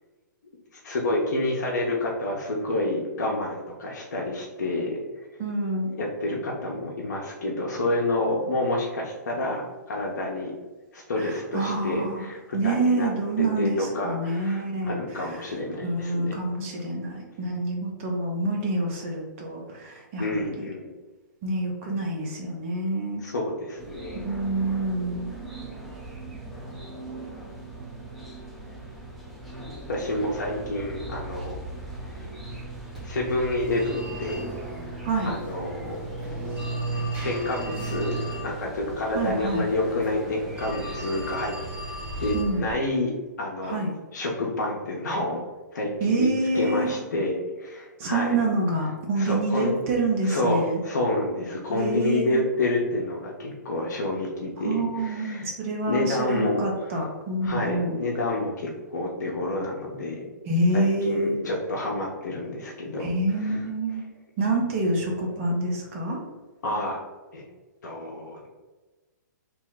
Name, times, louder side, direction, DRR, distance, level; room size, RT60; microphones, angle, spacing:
voice 1, 0.8-5.0 6.0-9.6 9.9-10.5 10.9-12.4 12.6-13.1 13.6-16.3 20.2-20.9 23.2-24.2 29.9-31.6 32.1-32.2 33.0-34.4 34.8-36.0 37.2-38.1 38.4-41.5 42.2-43.1 43.4-43.8 44.1-45.4 45.7-46.3 46.5-47.3 47.6-48.4 49.2-49.7 50.2-55.5 55.9-56.6 57.4-60.2 60.7-63.1 63.4-63.5 66.6-67.0 67.3-67.4 67.8-68.5, left 2 dB, 65° left, -2 dB, 0.7 m, -28 dB
voice 2, 5.4-5.9 11.2-12.3 12.5-15.5 15.8-20.7 21.4-23.2 24.1-25.3 35.0-35.3 39.1-39.7 42.3-42.7 43.6-43.9 46.0-46.9 48.0-50.8 51.7-52.4 54.6-58.0 60.4-61.4 63.0-64.0 64.4-66.2, right 2 dB, 45° right, 0 dB, 0.9 m, -27 dB
sound 1, 23.8-42.3, right 2 dB, ahead, 0.6 m, -37 dB
Telephone, 32.9-42.7, equal, 15° right, 1.1 m, -39 dB
2.8 x 2.1 x 3.9 m, 1.2 s
figure-of-eight pair, 120°, 10 cm